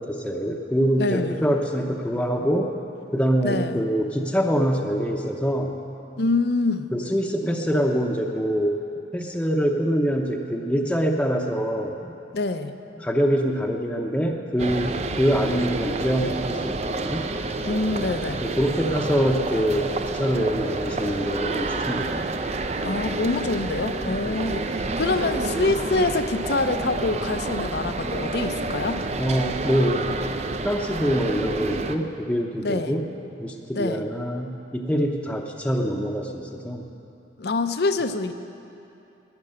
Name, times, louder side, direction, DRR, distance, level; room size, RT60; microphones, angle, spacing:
voice 1, 0.0-2.7 3.1-5.8 6.9-8.8 9.1-12.1 13.0-17.3 18.4-19.9 20.1-22.3 24.3-24.5 29.2-30.0 30.6-33.1 33.4-36.8, equal, 5° left, 1 dB, 0.7 m, -24 dB
voice 2, 1.0-1.5 3.4-3.8 6.2-6.9 12.3-12.7 17.6-18.4 22.8-29.0 32.6-33.0 33.8-34.0 37.4-38.3, left 3 dB, 60° left, 9 dB, 0.6 m, -25 dB
sound 1, 14.6-32.0, right 3 dB, 35° right, 0.5 m, -29 dB
12.0 x 10.5 x 8.7 m, 2.7 s
head